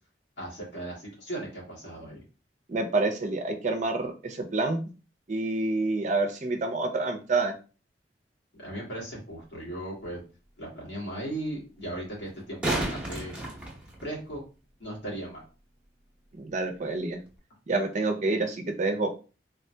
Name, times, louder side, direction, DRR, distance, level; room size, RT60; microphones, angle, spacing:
voice 1, 0.4-2.2 8.5-10.2 10.6-13.3 14.0-14.4 14.8-15.4, right 1 dB, 85° left, -4 dB, 1.7 m, -37 dB
voice 2, 2.7-4.9 5.3-7.5 16.4-17.2 17.7-19.2, right 3 dB, 45° right, 4 dB, 0.5 m, -28 dB
sound 1, 9.4-9.5 12.3-14.4 17.3-17.4, right 1 dB, 5° right, 0.8 m, -32 dB
3.6 x 2.7 x 2.2 m, 0.34 s
head